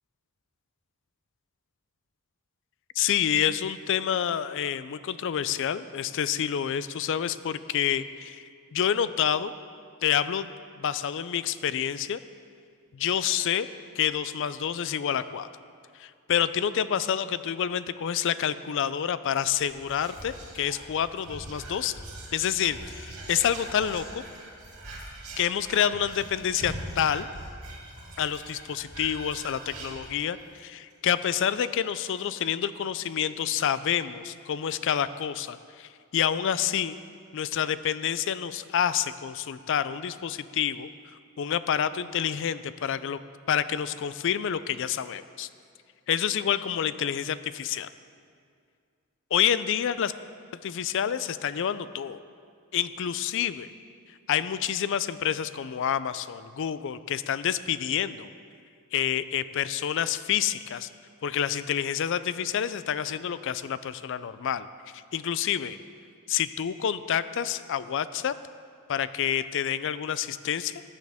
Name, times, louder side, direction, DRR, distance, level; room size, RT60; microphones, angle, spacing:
voice 1, 3.0-9.5 10.0-10.5 10.8-12.2 12.9-13.7 14.0-15.5 15.9-21.9 22.3-24.2 25.4-27.3 28.2-37.0 37.3-40.9 41.4-43.2 43.5-45.5 46.1-47.9 49.3-50.1 50.6-52.2 52.7-53.7 54.3-58.3 58.9-60.9 61.2-64.7 64.9-65.8 66.3-68.3 68.9-70.8, left 9 dB, 60° left, 14 dB, 0.4 m, -28 dB
Whispering, 19.5-30.6 30.9-31.0 31.2-31.6, right 1 dB, 85° right, 2.2 m, -42 dB
15.5 x 9.6 x 3.5 m, 2.2 s
head